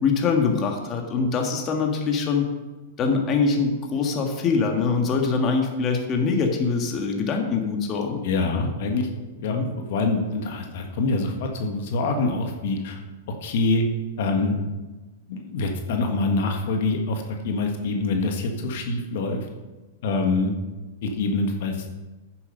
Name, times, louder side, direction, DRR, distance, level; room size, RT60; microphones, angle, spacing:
voice 1, 0.0-2.5 3.0-8.2 9.5-9.7, left 4 dB, 30° left, 3 dB, 1.7 m, -23 dB
voice 2, 8.2-9.1 9.4-13.0 13.4-13.8 14.2-14.6 15.3-19.4 20.0-20.5 21.0-21.8, left 3 dB, 65° left, 3 dB, 1.6 m, -25 dB
9.5 x 7.5 x 5.6 m, 1.2 s
hypercardioid pair, 120°, 0 cm